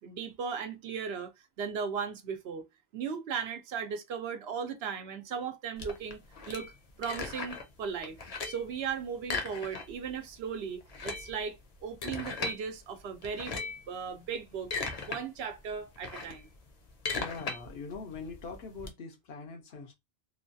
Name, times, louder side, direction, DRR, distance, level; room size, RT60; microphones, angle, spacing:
voice 1, 0.0-2.6 2.9-6.7 7.0-8.2 8.4-11.6 11.8-14.7 15.0-16.5, right 6 dB, 85° right, 0.9 m, -37 dB
sound 1, 5.8-7.7 8.0-8.7 9.2-10.1 10.4-10.5 10.8-12.6 13.2-13.9 14.4-15.2 15.6-18.9, left 4 dB, 45° left, 0.6 m, -37 dB
voice 2, 17.1-19.9, left 4 dB, 80° left, 1.0 m, -43 dB
3.0 x 2.3 x 2.5 m
omnidirectional pair, 1.0 m